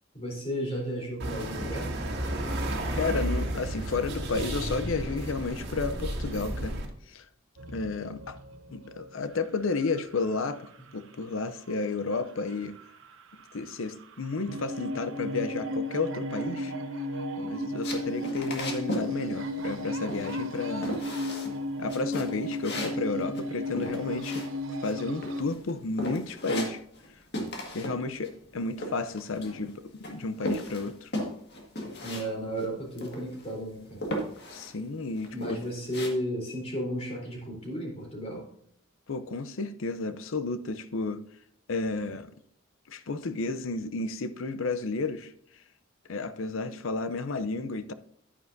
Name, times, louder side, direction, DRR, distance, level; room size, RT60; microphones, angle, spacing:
voice 1, 0.1-2.0 32.0-34.1 35.3-38.5, equal, 30° left, 3.8 m, -34 dB
sound 1, 1.2-6.9, right 1 dB, 55° right, 2.0 m, -32 dB
voice 2, 3.0-6.8 7.1-7.2 7.7-8.4 8.7-10.6 10.9-12.7 13.5-16.7 17.4-20.9 21.8-24.5 24.8-26.8 27.7-31.1 34.5-35.6 39.1-41.2 41.7-42.3 42.9-45.3 46.1-47.9, left 3 dB, 75° left, 0.6 m, -32 dB
sound 2, 7.6-10.8 12.4-12.5 12.8-13.1 13.4-13.5 14.0-25.4, equal, 70° right, 1.0 m, -34 dB
sound 3, 17.8-19.1 19.4-19.8 20.1-20.6 20.8-21.5 21.9-24.9 25.2-25.7 26.0-27.1 27.3-28.0 28.2-29.7 30.0-32.3 32.5-32.7 33.0-33.5 34.0-34.7 35.2-36.1, equal, 55° left, 1.8 m, -35 dB
10.0 x 9.5 x 2.6 m
head